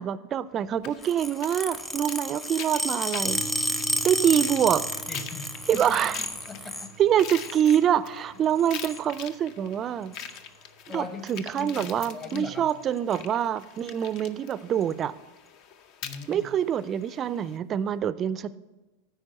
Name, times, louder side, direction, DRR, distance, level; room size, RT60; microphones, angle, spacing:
voice 1, 0.0-3.4 4.0-4.9 5.7-6.2 7.0-10.2 10.9-15.2 16.3-18.6, right 9 dB, 35° right, 16 dB, 0.4 m, -25 dB
sound 1, 0.8-17.6, left 8 dB, 50° left, 0.6 m, -44 dB
sound 2, 1.0-6.9 7.3-7.8 8.6-9.0 10.1-10.4 11.3-11.6 11.9-12.0 12.3-12.4 12.7-13.2 13.8-13.9 14.8-14.9, equal, 10° left, 0.7 m, -31 dB
sound 3, 3.2-11.1, right 2 dB, 75° left, 1.1 m, -45 dB
voice 2, 5.1-5.8 6.5-6.9 10.9-12.7 16.0-16.5, left 4 dB, 30° left, 6 dB, 1.2 m, -39 dB
9.7 x 4.5 x 6.6 m, 1.1 s
hypercardioid pair, 115°, 0 cm